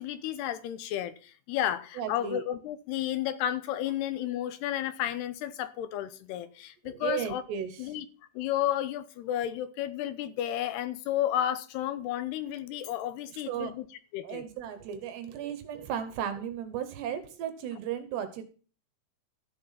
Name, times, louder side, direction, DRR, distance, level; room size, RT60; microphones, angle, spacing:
voice 1, 0.0-7.4 7.8-8.1 8.4-13.9 14.1-14.4, left 11 dB, 75° left, 12 dB, 2.7 m, -32 dB
voice 2, 2.0-2.4 6.8-8.0 13.5-13.7 14.2-18.4, right 9 dB, 75° right, 9 dB, 3.2 m, -35 dB
13.5 x 7.8 x 5.8 m, 0.38 s
omnidirectional pair, 5.1 m